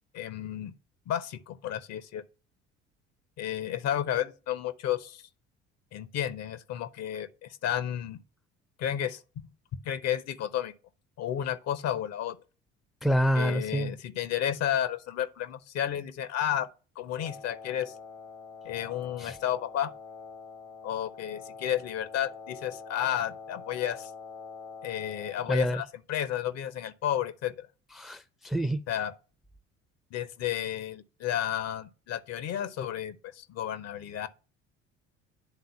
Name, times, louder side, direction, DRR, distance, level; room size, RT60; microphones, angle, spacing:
voice 1, 0.1-0.7 1.1-2.2 3.4-5.2 5.9-8.2 8.8-9.2 9.8-10.7 11.2-12.4 13.3-16.7 17.0-17.9 18.6-19.9 20.8-24.1 24.8-27.7 28.9-29.1 30.1-34.3, left 10 dB, 45° left, 0.8 m, -32 dB
voice 2, 13.0-13.9 19.2-19.4 25.5-25.8 28.0-28.8, equal, ahead, 0.6 m, -27 dB
Wind instrument woodwind instrument, 17.1-25.4, left 5 dB, 85° left, 2.2 m, -45 dB
9.9 x 3.8 x 5.6 m
figure-of-eight pair, 55°, 36 cm